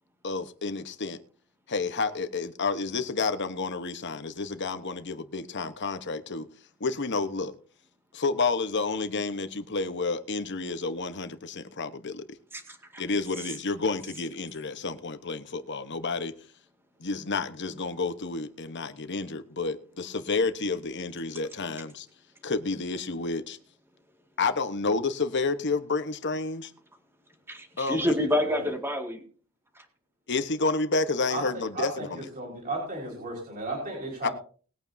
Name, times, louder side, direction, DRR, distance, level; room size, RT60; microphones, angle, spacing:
voice 1, 0.2-1.2 1.7-6.5 6.8-7.5 8.1-12.3 13.0-16.3 17.0-22.1 22.4-23.6 24.4-26.7 27.8-28.1 30.3-32.3 34.2-34.3, left 3 dB, 55° left, 1.2 m, -30 dB
voice 2, 12.5-13.0 27.5-29.2, left 1 dB, 10° right, 2.1 m, -28 dB
voice 3, 28.2-28.7 31.3-31.4 31.7-32.1 32.4-34.3, right 2 dB, 40° right, 4.7 m, -34 dB
20.5 x 8.9 x 2.8 m
head